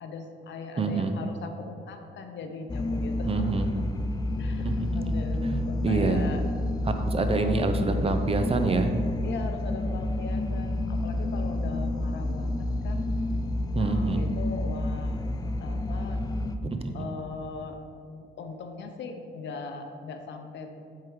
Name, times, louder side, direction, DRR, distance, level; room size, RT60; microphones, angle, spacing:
voice 1, 0.0-3.7 4.4-6.5 7.3-7.6 9.2-13.1 13.7-15.2 15.6-16.2 16.9-17.8 18.1-20.7, left 4 dB, 65° left, 5 dB, 0.7 m, -39 dB
voice 2, 0.8-1.1 3.3-3.9 4.6-5.0 5.4-6.2 6.8-9.0 13.7-14.2 16.6-16.9, right 3 dB, 30° right, 7 dB, 0.6 m, -27 dB
sound 1, 2.7-16.6, left 1 dB, 20° left, 0.4 m, -29 dB
7.6 x 3.8 x 4.8 m, 2.3 s
cardioid pair, 90°, 20 cm